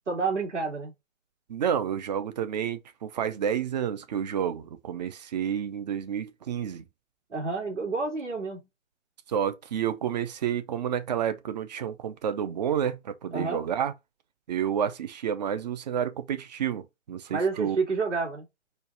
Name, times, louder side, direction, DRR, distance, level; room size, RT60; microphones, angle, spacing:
voice 1, 0.1-0.9 7.3-8.7 13.3-13.6 17.3-18.5, right 4 dB, 70° right, 2.5 m, -29 dB
voice 2, 1.5-6.8 9.3-13.9 14.5-17.8, right 8 dB, 35° right, 0.6 m, -30 dB
4.5 x 2.4 x 4.8 m
figure-of-eight pair, 130°, 37 cm